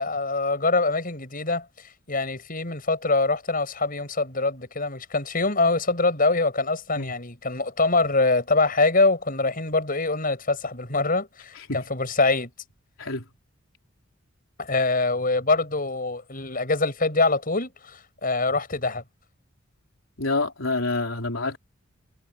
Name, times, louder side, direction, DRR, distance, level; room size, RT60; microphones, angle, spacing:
voice 1, 0.0-1.6 2.1-12.5 14.6-19.0, left 3 dB, 45° left, 6.9 m, -24 dB
voice 2, 20.2-21.6, left 3 dB, 80° left, 3.9 m, -27 dB
head